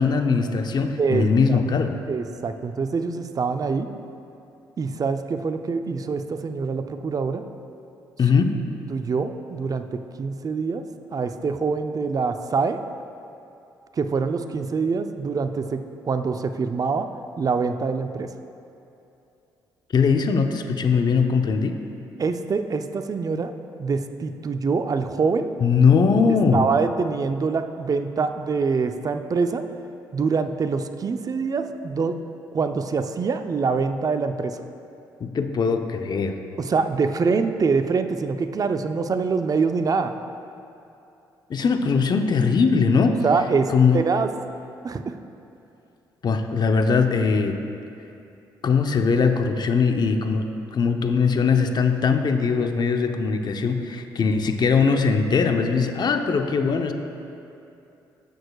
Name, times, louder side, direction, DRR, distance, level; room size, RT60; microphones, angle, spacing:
voice 1, 0.0-2.0 8.2-8.5 19.9-21.8 25.6-26.6 35.2-36.4 41.5-43.2 43.7-44.0 46.2-47.6 48.6-56.9, left 5 dB, 50° left, 6 dB, 0.8 m, -20 dB
voice 2, 1.0-1.6 2.1-3.9 4.8-7.4 8.9-10.8 11.1-12.8 14.0-17.1 17.4-18.3 22.2-23.5 23.8-25.5 26.5-29.6 30.1-32.2 32.5-34.6 36.6-40.1 43.2-44.3 44.8-45.1, right 4 dB, 40° right, 8 dB, 0.6 m, -25 dB
17.0 x 6.5 x 2.4 m, 2.7 s
hypercardioid pair, 55°, 10 cm